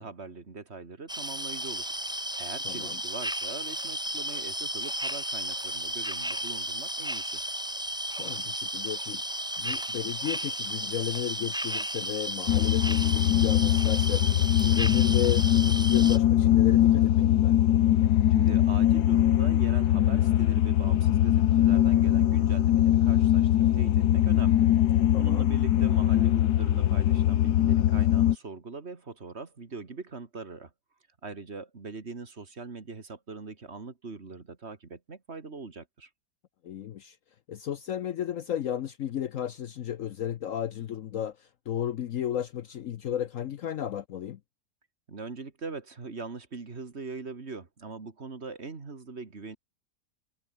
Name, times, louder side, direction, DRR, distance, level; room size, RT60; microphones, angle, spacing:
voice 1, 0.0-7.4 18.3-24.7 25.1-30.7 31.2-36.1 45.1-49.6, right 4 dB, 40° right, 2.2 m, -41 dB
sound 1, 1.1-16.2, equal, 5° right, 1.9 m, -34 dB
voice 2, 2.6-3.0 8.2-9.2 9.6-14.2 14.6-17.6 25.1-25.5 36.6-37.2 37.5-44.4, left 10 dB, 60° left, 1.0 m, -34 dB
sound 2, 12.5-28.4, left 12 dB, 75° left, 1.4 m, -22 dB
omnidirectional pair, 1.7 m